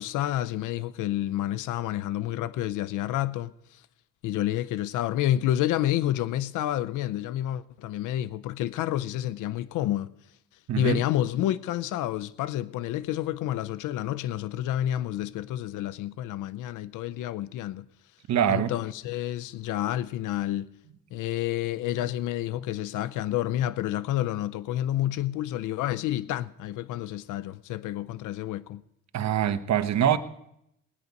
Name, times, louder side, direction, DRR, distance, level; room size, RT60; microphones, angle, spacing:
voice 1, 0.0-3.8 4.2-10.1 10.8-17.8 18.5-20.7 21.1-28.8, left 13 dB, 90° left, 0.6 m, -29 dB
voice 2, 10.7-11.0 18.3-18.7 29.1-30.2, right 9 dB, 65° right, 1.1 m, -24 dB
19.5 x 9.5 x 5.3 m
cardioid pair, 90°, 30 cm